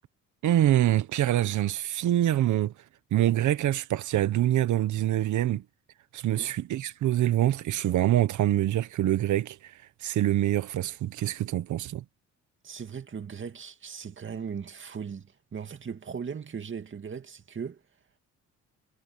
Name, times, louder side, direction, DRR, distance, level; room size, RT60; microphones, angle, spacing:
voice 1, 0.4-2.7 3.1-5.6 6.1-9.6 10.0-12.0, right 13 dB, 75° right, 1.3 m, -25 dB
voice 2, 12.6-17.8, right 6 dB, 40° right, 2.2 m, -38 dB
cardioid pair, 90°, 30 cm